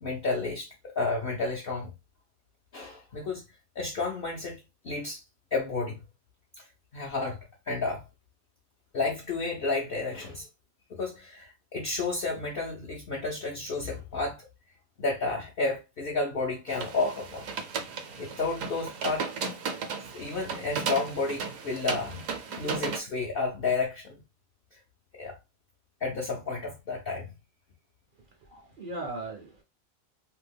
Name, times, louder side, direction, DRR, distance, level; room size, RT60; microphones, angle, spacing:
voice 1, 0.0-1.9 2.7-3.4 3.8-5.2 5.5-6.0 6.6-6.7 6.9-8.0 8.9-10.5 10.9-14.5 15.0-17.4 18.2-19.3 20.1-22.3 22.6-24.2 24.7-24.8 25.2-25.3 26.0-27.3 28.5-28.6, left 3 dB, 55° left, 0.7 m, -31 dB
sound 1, 16.7-23.0, right 5 dB, 75° right, 1.0 m, -35 dB
voice 2, 28.4-29.6, right 2 dB, 55° right, 0.6 m, -38 dB
2.7 x 2.2 x 3.3 m
omnidirectional pair, 1.4 m